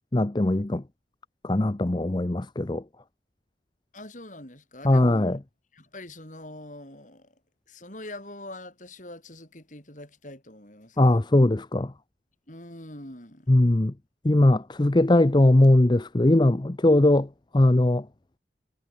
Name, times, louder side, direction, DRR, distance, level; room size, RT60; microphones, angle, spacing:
voice 1, 0.1-0.8 1.4-2.8 4.8-5.4 11.0-11.9 13.5-13.9 14.2-17.3 17.5-18.0, left 1 dB, 25° left, 0.6 m, -20 dB
voice 2, 3.9-5.4 5.7-7.4 7.7-11.0 12.5-13.6, left 1 dB, 45° left, 6.0 m, -43 dB
head